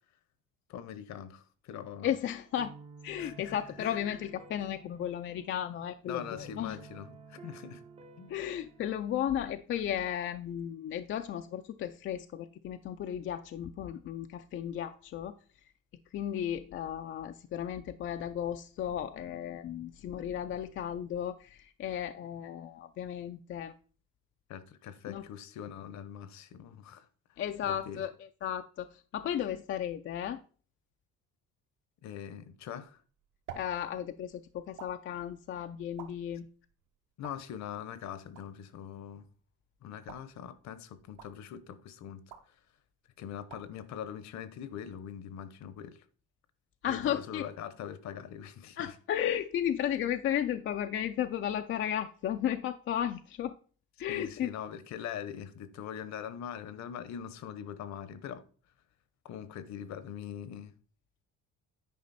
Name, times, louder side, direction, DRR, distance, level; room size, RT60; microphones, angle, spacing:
voice 1, 0.7-2.1 3.2-4.0 6.1-7.8 8.2-8.3 24.5-28.0 32.0-33.0 37.2-39.3 39.8-42.5 43.2-46.0 46.9-48.9 54.1-58.4 59.2-60.7, left 9 dB, 60° left, 0.9 m, -42 dB
Late Spring, 1.7-9.6, right 4 dB, 20° right, 0.6 m, -53 dB
voice 2, 2.0-2.8 3.0-6.8 8.3-15.4 16.1-23.7 25.1-25.2 27.4-28.1 28.4-30.4 33.6-36.5 46.8-47.4 48.8-53.5 54.0-54.5, left 10 dB, 40° left, 0.4 m, -34 dB
sound 1, 32.8-45.0, right 8 dB, 75° right, 1.7 m, -55 dB
9.5 x 5.1 x 4.1 m
cardioid pair, 155°, 32 cm